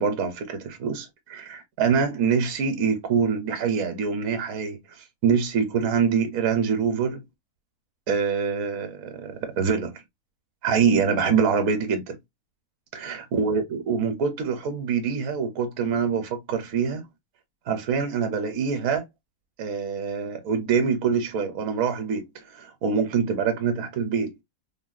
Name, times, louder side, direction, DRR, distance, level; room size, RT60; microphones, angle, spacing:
voice 1, 0.0-7.2 8.1-10.0 10.6-12.1 12.9-17.0 17.7-19.1 19.6-24.4, right 6 dB, 75° right, 1.0 m, -25 dB
3.7 x 2.1 x 2.3 m
omnidirectional pair, 1.5 m